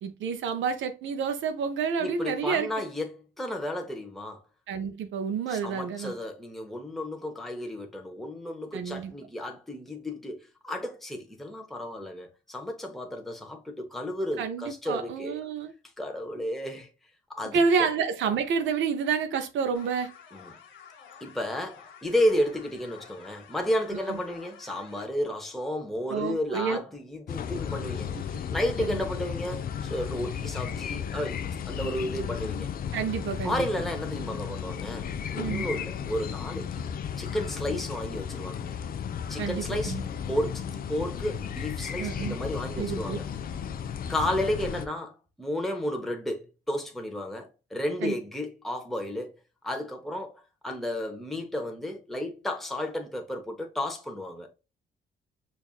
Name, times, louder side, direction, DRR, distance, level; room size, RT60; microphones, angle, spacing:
voice 1, 0.0-2.7 4.7-6.1 8.7-9.1 14.4-15.7 17.5-20.1 24.1-24.2 26.1-26.8 28.8-29.0 31.8-32.1 32.9-33.6 35.4-35.7 39.4-40.0 42.0-42.4 42.8-43.2 48.0-48.1, right 6 dB, 70° right, 0.5 m, -29 dB
voice 2, 2.0-4.4 5.5-15.4 16.0-16.9 17.3-17.6 20.3-20.5 21.2-32.7 33.4-36.8 37.2-38.8 39.3-40.0 40.3-40.6 40.9-43.3 44.1-49.3 49.6-54.5, left 1 dB, ahead, 0.7 m, -32 dB
sound 1, 19.7-25.0, left 7 dB, 90° left, 1.1 m, -51 dB
sound 2, 27.3-44.9, left 8 dB, 50° left, 0.4 m, -34 dB
5.3 x 2.4 x 2.3 m
cardioid pair, 90°, 20 cm